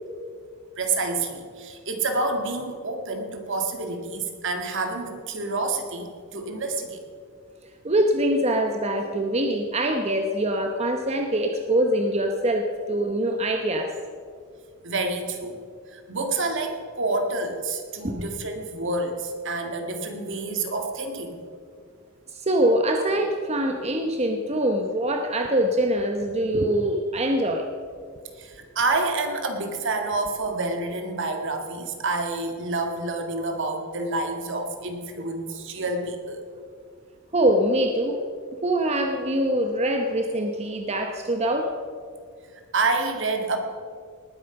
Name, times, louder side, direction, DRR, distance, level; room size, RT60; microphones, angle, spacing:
voice 1, 0.8-7.0 14.8-15.6 15.9-21.4 28.4-36.4 42.7-43.6, right 3 dB, 60° right, 5 dB, 1.9 m, -28 dB
voice 2, 7.8-14.0 18.0-18.2 22.3-27.7 35.2-35.3 37.3-38.2 38.6-41.7, right 1 dB, 30° right, 4 dB, 0.9 m, -24 dB
19.5 x 9.1 x 5.8 m, 2.1 s
head